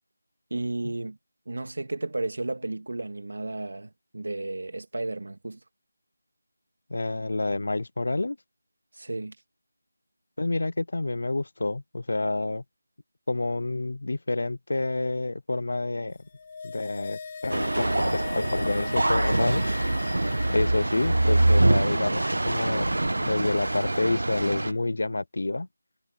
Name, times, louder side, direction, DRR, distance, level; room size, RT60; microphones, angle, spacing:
voice 1, 0.5-1.2 1.5-5.6 8.9-9.4, right 2 dB, 60° right, 2.3 m, -33 dB
voice 2, 6.9-8.4 10.4-12.6 13.3-16.2 16.6-19.6 20.5-25.7, left 2 dB, 50° left, 0.5 m, -28 dB
sound 1, 16.2-21.7 21.9-22.0, left 5 dB, 20° left, 2.2 m, -40 dB
sound 2, 17.5-24.7, right 2 dB, 85° right, 0.4 m, -24 dB
figure-of-eight pair, 180°, 0 cm